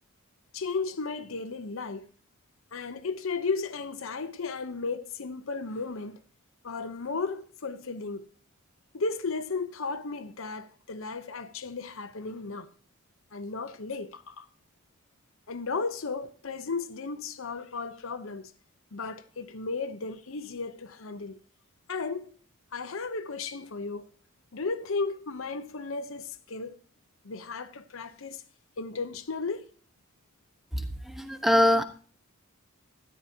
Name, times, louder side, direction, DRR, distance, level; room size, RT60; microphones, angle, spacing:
voice 1, 0.5-2.1 2.7-6.2 6.6-8.3 8.9-12.7 13.3-14.5 15.5-18.5 18.9-21.4 21.9-22.3 22.7-24.1 24.5-26.8 27.2-28.4 28.8-29.7, left 4 dB, 70° left, 0.8 m, -34 dB
voice 2, 30.7-31.8, left 1 dB, ahead, 1.0 m, -24 dB
13.0 x 10.5 x 2.8 m
head